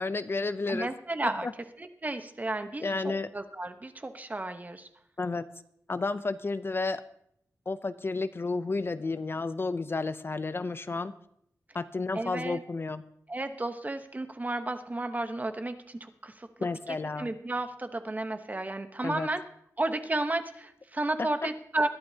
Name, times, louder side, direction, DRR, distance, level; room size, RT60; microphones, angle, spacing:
voice 1, 0.0-0.9 1.2-1.5 2.8-3.3 5.2-5.5 5.9-7.0 7.7-11.1 11.7-13.1 16.6-17.3 19.0-19.3 21.2-21.3, left 3 dB, 40° left, 12 dB, 0.5 m, -31 dB
voice 2, 0.7-1.5 1.8-4.9 12.1-12.6 13.3-19.4 19.8-21.9, right 2 dB, 25° right, 8 dB, 1.0 m, -33 dB
21.5 x 11.5 x 2.8 m, 0.72 s
wide cardioid pair, 80°, 6 cm